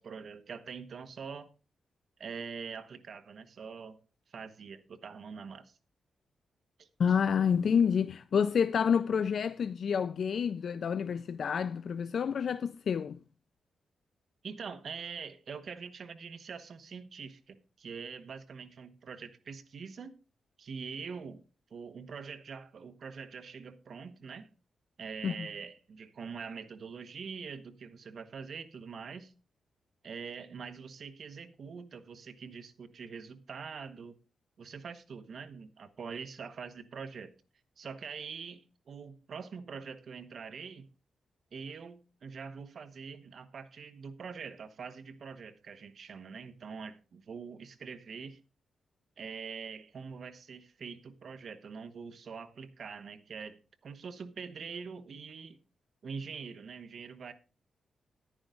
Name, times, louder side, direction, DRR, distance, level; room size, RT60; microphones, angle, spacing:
voice 1, 0.0-1.5 2.2-4.0 4.3-5.8 6.8-6.9 14.4-20.2 20.6-21.4 21.7-24.5 25.0-29.3 30.0-34.2 34.6-37.3 37.8-40.9 41.5-48.4 49.2-55.6 56.0-57.3, right 5 dB, 60° right, 1.1 m, -44 dB
voice 2, 7.0-13.2 25.2-25.5, left 7 dB, 60° left, 0.4 m, -28 dB
10.5 x 9.7 x 3.8 m
cardioid pair, 110°, 0 cm